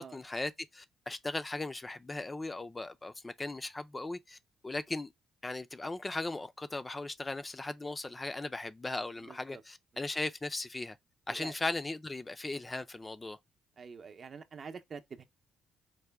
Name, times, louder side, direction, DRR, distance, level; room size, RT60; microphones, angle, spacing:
voice 1, 0.0-4.4 4.6-5.1 5.4-11.0 11.3-13.4, left 2 dB, 20° left, 0.4 m, -38 dB
voice 2, 9.2-9.6 11.3-11.5 13.8-15.2, right 5 dB, 45° right, 0.6 m, -47 dB
4.7 x 2.1 x 3.4 m
cardioid pair, 90°, 0 cm